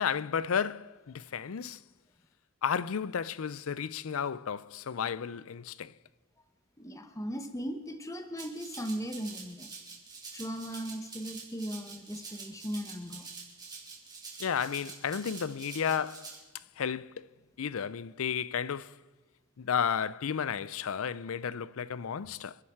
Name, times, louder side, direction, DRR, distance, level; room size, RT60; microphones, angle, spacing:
voice 1, 0.0-1.8 2.6-5.9 14.4-16.3 16.8-17.3 17.6-19.0 19.6-22.6, left 7 dB, 80° left, 0.5 m, -33 dB
voice 2, 6.8-9.7 10.3-13.3, equal, 15° left, 1.1 m, -38 dB
Rattle (instrument), 8.4-16.4, right 4 dB, 20° right, 3.3 m, -46 dB
28.0 x 11.0 x 4.5 m
head